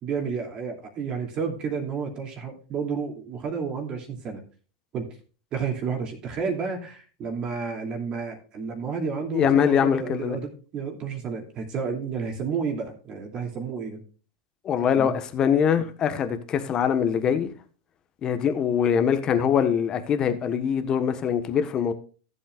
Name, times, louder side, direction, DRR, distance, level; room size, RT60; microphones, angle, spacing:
voice 1, 0.0-4.4 4.9-5.1 5.5-14.0 15.0-15.2, right 5 dB, 35° right, 2.7 m, -31 dB
voice 2, 9.3-10.4 14.6-17.5 18.2-21.9, left 8 dB, 35° left, 1.3 m, -23 dB
15.0 x 7.8 x 2.5 m
hypercardioid pair, 95°, 2 cm